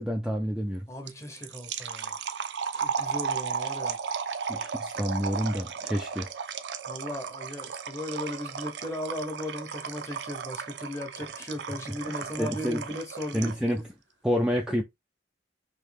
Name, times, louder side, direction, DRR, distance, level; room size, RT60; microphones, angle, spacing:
voice 1, 0.0-0.8 4.5-6.3 12.0-12.8 13.3-13.8 14.2-14.8, equal, 5° right, 0.3 m, -28 dB
voice 2, 0.9-2.2 2.7-4.0 5.9-6.0 6.8-13.5, left 1 dB, 15° left, 0.8 m, -37 dB
sound 1, 1.1-13.7, right 6 dB, 70° right, 0.4 m, -35 dB
3.1 x 2.8 x 3.3 m
head